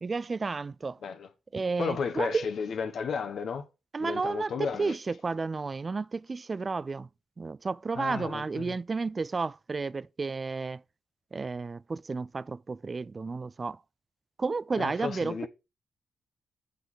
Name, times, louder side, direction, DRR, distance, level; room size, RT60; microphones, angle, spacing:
voice 1, 0.0-1.0 1.5-2.5 3.9-7.1 7.4-10.8 11.3-13.8 14.4-15.5, right 4 dB, 35° right, 0.3 m, -32 dB
voice 2, 1.8-3.6 4.0-5.0 7.9-8.8 14.8-15.5, left 6 dB, 70° left, 1.1 m, -33 dB
8.1 x 6.3 x 3.7 m
cardioid pair, 65°, 0 cm